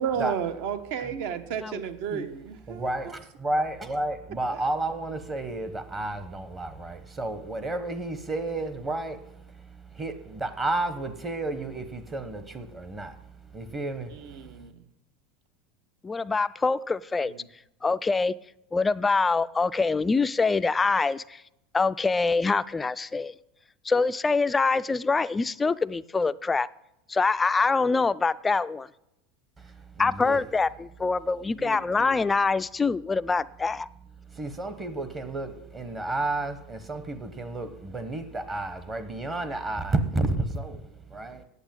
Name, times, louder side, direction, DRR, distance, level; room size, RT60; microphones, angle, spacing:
voice 1, 0.0-3.1 4.5-4.6 14.1-14.8 17.2-17.4 31.6-32.2, right 8 dB, 65° right, 1.2 m, -33 dB
voice 2, 2.7-14.5 29.6-30.5 34.3-41.4, right 2 dB, 20° right, 0.9 m, -32 dB
voice 3, 16.0-17.3 17.8-18.4 18.7-21.4 21.7-23.3 23.9-26.7 27.1-28.9 30.0-33.9, left 4 dB, 10° left, 0.3 m, -25 dB
8.6 x 8.1 x 8.9 m
supercardioid pair, 150°, 0 cm